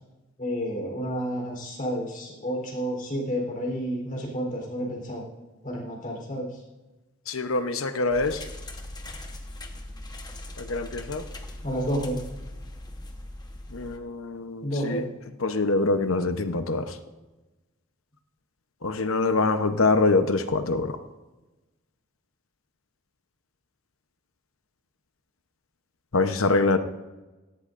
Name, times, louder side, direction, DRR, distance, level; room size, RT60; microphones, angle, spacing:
voice 1, 0.4-5.2 5.6-6.6 11.6-12.2 14.6-15.1, equal, 40° left, 0 dB, 3.8 m, -30 dB
voice 2, 7.3-8.4 10.6-11.2 13.7-15.0 15.4-17.0 18.8-21.0 26.1-26.8, left 3 dB, 70° left, 9 dB, 0.9 m, -24 dB
sound 1, 8.1-14.0, left 1 dB, 20° left, 1.1 m, -40 dB
17.0 x 16.5 x 2.6 m, 1.1 s
head